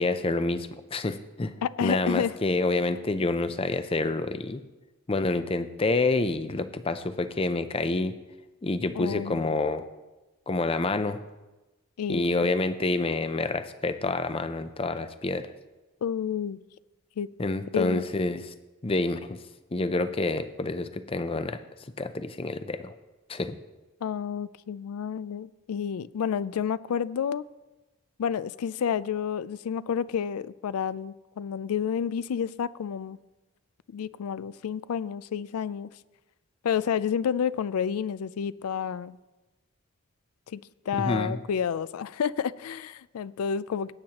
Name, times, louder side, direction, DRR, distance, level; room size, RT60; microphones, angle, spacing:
voice 1, 0.0-1.5 1.8-4.6 5.1-8.1 8.6-9.9 10.5-11.2 12.1-15.5 17.4-18.5 18.8-19.4 19.7-21.6 22.0-23.0 23.3-23.6 41.0-41.4, left 2 dB, 25° left, 0.5 m, -28 dB
voice 2, 1.6-2.3 8.9-9.5 12.0-12.3 16.0-16.6 17.2-17.3 17.7-18.0 24.0-27.4 28.2-33.2 33.9-35.9 36.6-39.2 40.5-40.6 40.9-43.9, left 7 dB, 90° left, 0.4 m, -30 dB
18.5 x 8.8 x 2.9 m
head